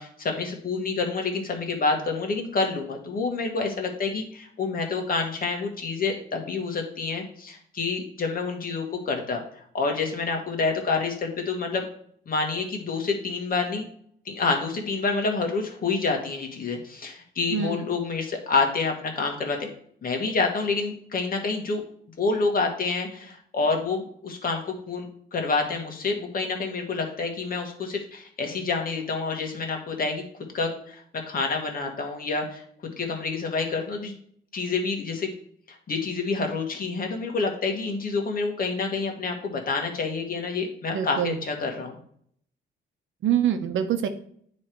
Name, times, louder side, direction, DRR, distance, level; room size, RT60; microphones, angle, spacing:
voice 1, 0.0-9.4 9.7-11.8 12.3-13.9 14.2-19.7 20.0-21.8 22.2-30.2 30.5-31.0 31.3-32.6 33.0-34.1 34.5-35.3 35.7-42.0, left 4 dB, 45° left, 3 dB, 1.5 m, -28 dB
voice 2, 40.9-41.4 43.2-44.1, right 9 dB, 75° right, 8 dB, 0.8 m, -25 dB
9.5 x 3.3 x 4.5 m, 0.63 s
cardioid pair, 120°, 20 cm